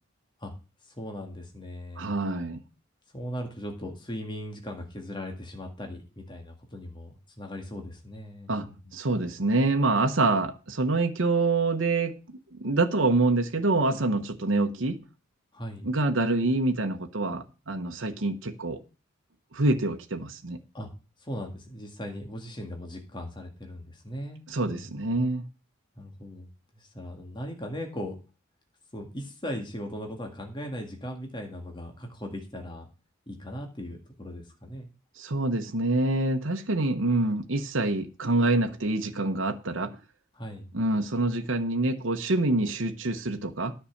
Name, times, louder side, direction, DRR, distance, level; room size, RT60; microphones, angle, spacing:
voice 1, 0.8-2.1 3.1-8.8 15.5-15.9 20.7-20.9 21.2-24.4 24.6-24.9 26.0-26.5 26.8-28.2 28.9-32.9 33.3-34.9 40.3-40.7, equal, 25° left, 1.9 m, -38 dB
voice 2, 2.0-2.6 8.5-8.7 8.9-12.2 12.5-15.0 15.8-18.8 19.5-20.6 24.5-25.4 35.2-40.0 40.7-43.7, right 2 dB, 70° right, 1.0 m, -26 dB
10.0 x 5.6 x 7.1 m
head